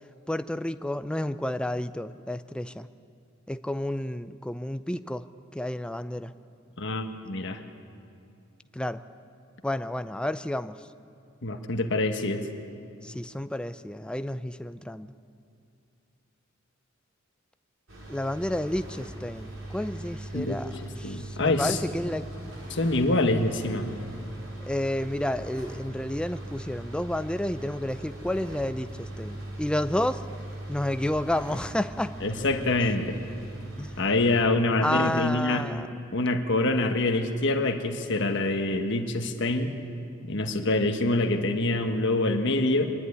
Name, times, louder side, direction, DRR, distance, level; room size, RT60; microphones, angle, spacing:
voice 1, 0.3-2.9 3.5-5.2 5.5-6.3 8.7-9.0 9.6-10.8 13.0-15.1 18.1-20.7 21.0-22.5 24.6-30.2 30.7-32.1 33.8-34.0 34.8-35.9, left 1 dB, 5° left, 12 dB, 0.4 m, -30 dB
voice 2, 6.8-7.6 11.4-12.5 20.3-20.6 21.0-21.8 22.7-23.9 32.2-33.2 34.0-35.7 36.1-39.7 40.3-42.9, left 2 dB, 65° left, 5 dB, 1.4 m, -25 dB
sound 1, 17.9-34.4, right 1 dB, 75° right, 4.5 m, -40 dB
24.5 x 11.0 x 9.6 m, 2.6 s
head